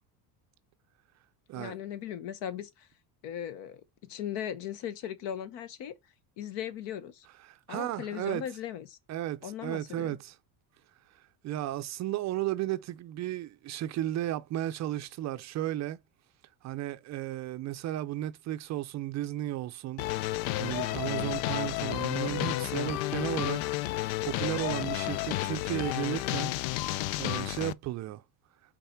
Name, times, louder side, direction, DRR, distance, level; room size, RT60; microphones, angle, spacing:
voice 1, 1.5-2.9 3.2-6.0 6.4-7.3 7.7-9.0 9.4-10.2 21.1-21.3, left 9 dB, 60° left, 1.1 m, -38 dB
voice 2, 7.4-8.4 9.1-10.4 11.1-16.0 16.6-20.1 20.6-23.6 24.2-26.5 27.2-28.2, right 13 dB, 40° right, 0.4 m, -34 dB
sound 1, 20.0-27.7, left 16 dB, 80° left, 0.6 m, -31 dB
5.7 x 4.1 x 4.4 m
cardioid pair, 150°, 47 cm